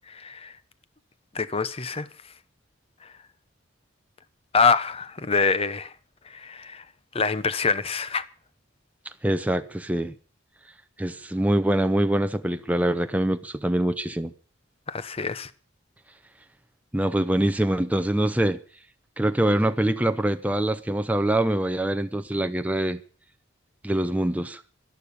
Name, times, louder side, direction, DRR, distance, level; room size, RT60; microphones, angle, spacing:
voice 1, 0.1-0.5 1.3-2.1 4.5-5.9 6.3-6.8 7.1-8.2 14.9-15.5, left 5 dB, 30° left, 0.8 m, -25 dB
voice 2, 9.2-10.1 11.0-14.3 16.9-18.6 19.2-23.0 23.8-24.6, right 1 dB, 5° right, 0.6 m, -24 dB
12.0 x 11.0 x 8.6 m
head